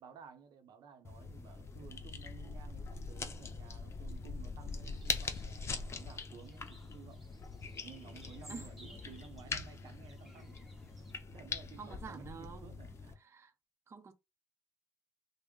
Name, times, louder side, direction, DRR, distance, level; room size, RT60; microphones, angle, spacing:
voice 1, 0.0-7.3 7.8-10.6 11.0-13.2, right 7 dB, 75° right, 0.7 m, -55 dB
sound 1, 1.0-13.1, left 4 dB, 40° left, 0.6 m, -43 dB
sound 2, 4.6-11.1, right 1 dB, ahead, 1.6 m, -60 dB
voice 2, 11.8-12.7 13.2-13.5 13.9-14.1, right 5 dB, 40° right, 0.6 m, -48 dB
3.5 x 2.0 x 3.5 m
cardioid pair, 100°, 7 cm